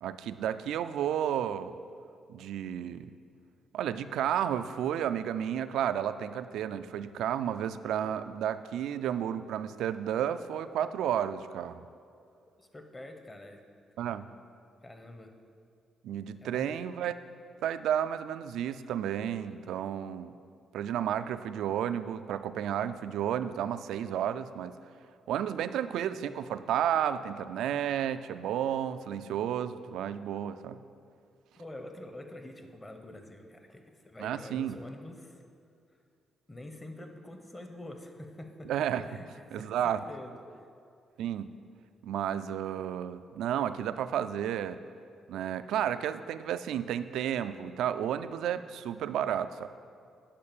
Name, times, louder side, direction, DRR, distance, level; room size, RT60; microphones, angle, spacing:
voice 1, 0.0-1.7 2.3-3.1 3.7-11.8 14.0-14.3 16.0-17.1 17.6-20.3 20.7-24.8 25.3-30.8 34.2-34.8 38.7-39.1 39.5-40.0 41.2-41.5 42.0-44.8 45.3-49.7, right 10 dB, 80° right, 11 dB, 0.3 m, -32 dB
voice 2, 12.6-13.6 14.8-15.3 16.4-16.7 31.6-35.4 36.5-38.7 39.0-40.7, left 1 dB, 20° left, 5 dB, 1.0 m, -46 dB
8.7 x 5.0 x 7.1 m, 2.3 s
cardioid pair, 75°, 0 cm